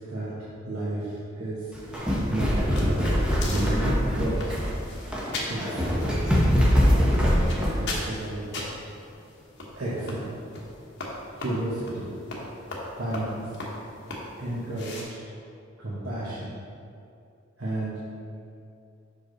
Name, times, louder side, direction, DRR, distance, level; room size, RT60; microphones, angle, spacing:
voice 1, 0.6-1.8 2.3-3.9 4.2-4.5 5.1-7.5 7.8-8.5 9.7-10.4 11.4-12.1 12.9-13.5 14.4-15.2 15.8-16.5 17.6-18.0, right 1 dB, 75° right, -8 dB, 1.2 m, -32 dB
sound 1, 1.7-7.8, equal, 5° right, 0.8 m, -23 dB
sound 2, 1.9-15.0, left 2 dB, 60° left, 1.1 m, -39 dB
6.1 x 5.1 x 3.9 m, 2.5 s
head